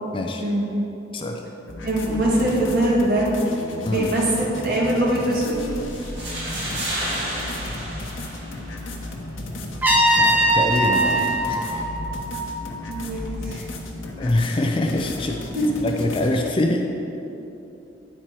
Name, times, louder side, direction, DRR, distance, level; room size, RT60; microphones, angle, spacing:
sound 1, 1.7-16.5, left 1 dB, 85° left, 0.9 m, -34 dB
voice 1, 1.8-3.3 3.8-5.6 12.9-13.6 15.5-15.7, right 1 dB, 50° right, -4 dB, 1.6 m, -22 dB
sound 2, 5.9-8.9, right 1 dB, 70° right, 1.6 m, -31 dB
Trumpet, 9.8-12.7, right 1 dB, 10° right, 0.7 m, -21 dB
voice 2, 10.1-11.6 14.2-15.4 15.8-16.9, left 1 dB, 25° left, 2 dB, 0.4 m, -24 dB
9.2 x 4.4 x 4.5 m, 2.9 s
head